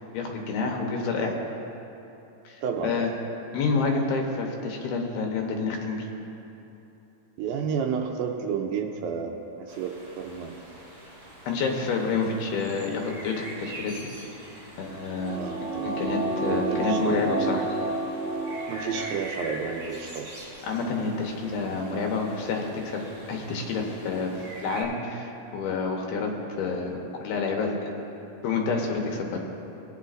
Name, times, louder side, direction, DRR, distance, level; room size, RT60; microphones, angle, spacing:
voice 1, 0.1-1.3 2.5-2.6 2.8-3.1 3.5-6.0 11.5-14.1 14.8-15.4 15.8-17.6 20.7-23.0 23.3-24.3 24.6-26.3 26.6-27.8 28.4-29.4, left 4 dB, 80° left, 1 dB, 2.9 m, -28 dB
voice 2, 2.6-3.1 7.4-10.6 15.3-17.3 18.7-20.3, right 6 dB, 80° right, 3 dB, 2.3 m, -31 dB
sound 1, 9.7-24.8, right 1 dB, 35° right, 2.9 m, -44 dB
sound 2, 14.7-19.5 19.9-20.0, right 2 dB, 55° right, 1.3 m, -30 dB
19.5 x 9.6 x 2.5 m, 2.9 s
omnidirectional pair, 4.4 m